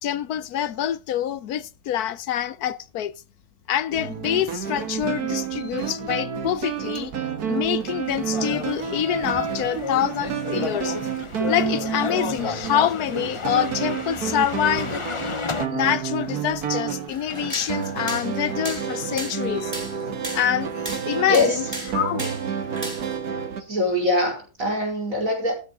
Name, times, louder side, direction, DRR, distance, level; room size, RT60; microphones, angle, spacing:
voice 1, 0.0-3.1 3.7-7.1 7.4-11.0 11.5-15.0 15.7-19.8 20.3-21.6 21.9-22.3, left 10 dB, 85° left, 1.3 m, -26 dB
sound 1, 3.9-23.6, right 7 dB, 90° right, 1.9 m, -30 dB
sound 2, 8.1-15.7, left 4 dB, 25° left, 0.7 m, -32 dB
sound 3, 17.1-23.2, right 1 dB, 15° right, 5.8 m, -36 dB
voice 2, 21.3-21.6 23.7-25.5, left 2 dB, 60° right, 5.2 m, -22 dB
13.0 x 9.2 x 3.7 m
omnidirectional pair, 1.6 m